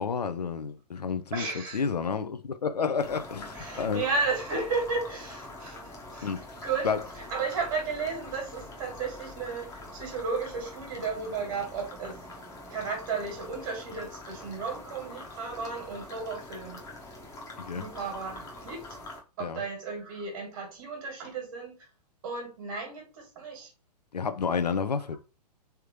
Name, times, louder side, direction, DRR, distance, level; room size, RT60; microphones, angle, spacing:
voice 1, 0.0-4.0 6.2-6.4 6.8-7.0 17.6-17.9 19.4-19.6 24.1-25.2, left 5 dB, 75° left, 0.5 m, -30 dB
voice 2, 1.3-1.8 3.5-6.3 6.6-12.2 12.7-16.8 17.7-19.0 19.4-21.8 22.2-23.7 25.1-25.2, right 4 dB, 45° right, 1.7 m, -34 dB
sound 1, 3.0-19.2, left 2 dB, 15° left, 0.9 m, -44 dB
3.6 x 3.4 x 3.0 m
figure-of-eight pair, 115°, 21 cm